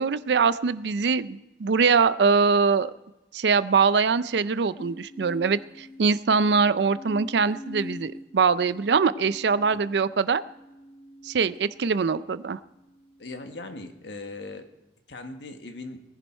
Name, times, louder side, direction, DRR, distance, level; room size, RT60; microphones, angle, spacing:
voice 1, 0.0-2.9 3.3-10.4 11.2-12.6, right 5 dB, 70° right, 15 dB, 0.5 m, -23 dB
sound 1, 4.8-12.2 12.8-13.3, left 2 dB, 30° left, 1.1 m, -44 dB
voice 2, 13.2-14.7 15.1-16.0, left 2 dB, 75° left, 6 dB, 1.4 m, -39 dB
19.0 x 10.5 x 4.5 m, 1.0 s
head